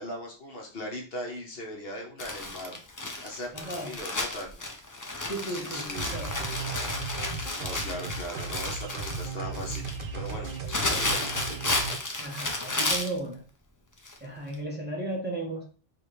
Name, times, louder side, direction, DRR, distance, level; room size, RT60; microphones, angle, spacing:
voice 1, 0.0-2.8 3.2-4.6 5.5-6.2 7.5-11.3, left 1 dB, 60° left, 0 dB, 1.2 m, -39 dB
Crumpling crinkling, 2.2-13.2 14.0-14.2 14.5-14.6, left 2 dB, 30° left, 0.3 m, -32 dB
voice 2, 3.5-3.9 5.2-5.9 6.1-6.4 12.2-13.4 14.2-15.6, right 2 dB, 10° right, -3 dB, 1.0 m, -35 dB
sound 1, 5.9-12.0, right 4 dB, 55° right, 0.7 m, -36 dB
4.8 x 2.5 x 3.0 m, 0.37 s
omnidirectional pair, 1.1 m